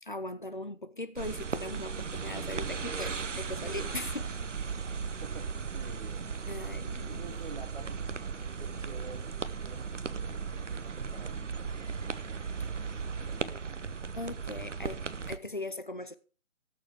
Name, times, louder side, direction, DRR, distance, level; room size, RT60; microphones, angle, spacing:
voice 1, 0.0-4.6 6.5-7.2 14.2-15.0 15.3-16.2, left 2 dB, 40° left, 0.5 m, -39 dB
sound 1, 1.2-15.4, right 5 dB, 60° right, 0.8 m, -36 dB
voice 2, 5.2-6.2 7.1-9.3 9.6-12.8 13.3-13.9, right 4 dB, 35° right, 1.5 m, -50 dB
18.0 x 6.8 x 3.6 m
figure-of-eight pair, 155°, 41 cm